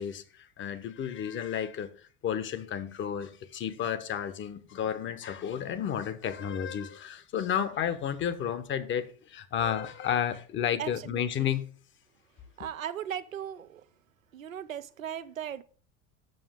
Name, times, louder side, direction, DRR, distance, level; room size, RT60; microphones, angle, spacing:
voice 1, 0.0-1.9 2.2-11.7, left 9 dB, 30° left, 0.9 m, -32 dB
voice 2, 10.8-11.5 12.6-13.8 14.3-15.6, right 9 dB, 85° right, 0.6 m, -38 dB
7.8 x 7.1 x 3.5 m
figure-of-eight pair, 75°, 39 cm